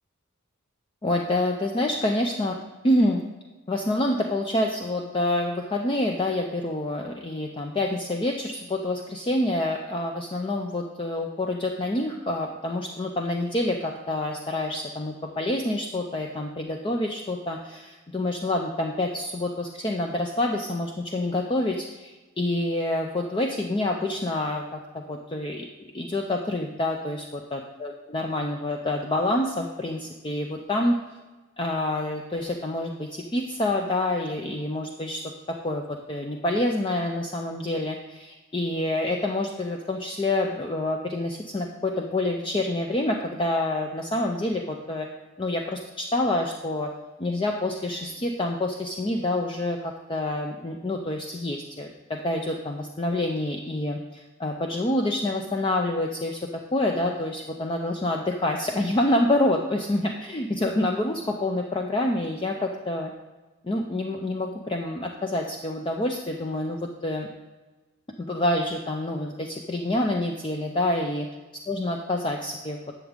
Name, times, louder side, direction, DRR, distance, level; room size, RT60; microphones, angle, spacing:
voice 1, 1.0-2.6 2.8-3.2 3.7-25.7 25.9-31.0 31.6-35.2 35.5-45.1 45.4-46.9 47.2-56.4 56.7-63.1 63.6-67.3 68.2-71.3 71.7-72.9, left 1 dB, 25° left, 2 dB, 0.5 m, -27 dB
10.5 x 7.0 x 3.7 m, 1.2 s
head